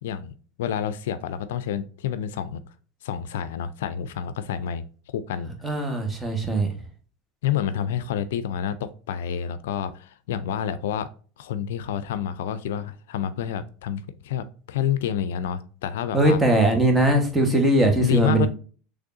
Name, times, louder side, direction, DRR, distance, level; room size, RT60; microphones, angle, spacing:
voice 1, 0.0-2.6 3.0-4.8 5.1-5.5 7.4-11.1 11.4-16.4 18.0-18.5, left 9 dB, 80° left, 0.3 m, -28 dB
voice 2, 5.6-6.7 16.1-18.5, right 1 dB, 10° right, 1.2 m, -20 dB
3.5 x 3.3 x 2.5 m
supercardioid pair, 100°, 0 cm